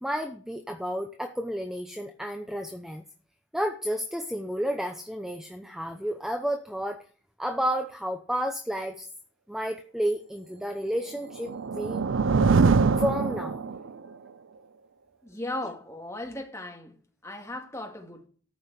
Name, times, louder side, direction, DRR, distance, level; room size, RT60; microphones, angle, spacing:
voice 1, 0.0-3.0 3.5-7.0 7.4-9.1 9.5-12.0 13.0-13.8, equal, ahead, 0.8 m, -31 dB
sound 1, 11.2-14.1, right 4 dB, 85° right, 0.5 m, -23 dB
voice 2, 15.2-17.0 17.2-18.3, left 1 dB, 15° left, 2.4 m, -37 dB
13.5 x 5.7 x 8.2 m
head